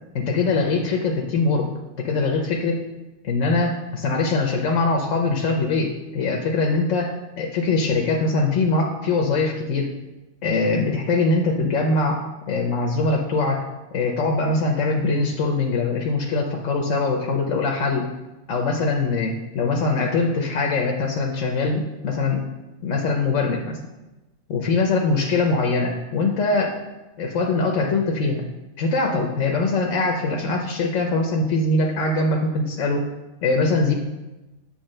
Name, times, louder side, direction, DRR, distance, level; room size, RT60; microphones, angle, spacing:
voice 1, 0.1-1.7 2.0-2.8 3.2-9.9 10.4-12.2 12.5-13.6 13.9-18.1 18.5-22.4 22.8-23.8 24.5-26.8 27.2-28.4 28.8-33.1 33.4-33.9, left 3 dB, 85° left, 1 dB, 1.1 m, -22 dB
8.1 x 3.3 x 6.5 m, 1.0 s
omnidirectional pair, 1.3 m